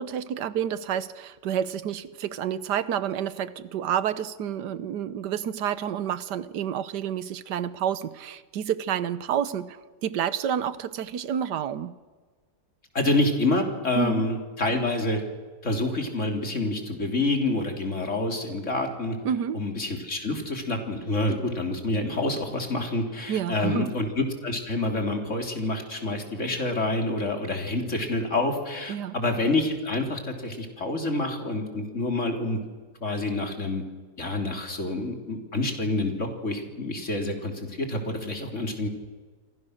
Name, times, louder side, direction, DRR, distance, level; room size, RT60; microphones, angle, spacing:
voice 1, 0.0-12.0 13.9-14.3 19.2-19.6 23.3-23.9 28.9-29.2, right 9 dB, 90° right, 15 dB, 1.5 m, -29 dB
voice 2, 12.9-15.2 15.6-19.2 19.5-32.6 33.0-33.8 34.2-38.9, left 2 dB, 45° left, 3 dB, 3.6 m, -27 dB
29.0 x 24.5 x 6.5 m, 1.4 s
omnidirectional pair, 1.7 m